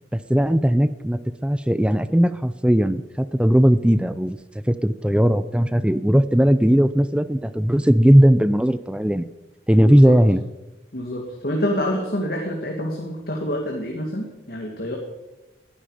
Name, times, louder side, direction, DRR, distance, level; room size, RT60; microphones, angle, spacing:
voice 1, 0.1-9.3 9.7-10.4, equal, 5° right, 14 dB, 0.4 m, -18 dB
voice 2, 9.8-10.2 10.9-15.0, equal, 60° left, 0 dB, 2.2 m, -27 dB
19.5 x 13.0 x 5.0 m, 1.1 s
head